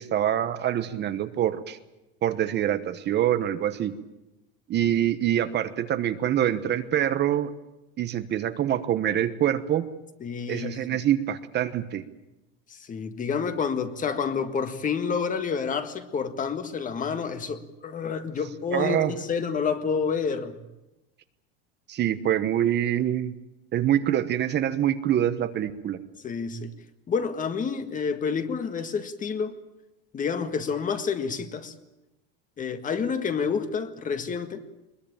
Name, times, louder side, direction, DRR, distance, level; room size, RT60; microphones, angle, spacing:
voice 1, 0.0-1.8 2.2-4.0 4.7-7.5 8.0-9.9 10.5-12.0 18.7-19.1 21.9-23.3 23.7-26.0, right 11 dB, 35° right, 1.2 m, -25 dB
voice 2, 10.2-11.0 12.8-20.6 26.2-26.7 27.1-29.5 30.1-31.7 32.6-34.6, left 6 dB, 25° left, 1.7 m, -29 dB
21.5 x 21.5 x 8.9 m
supercardioid pair, 140°, 30 cm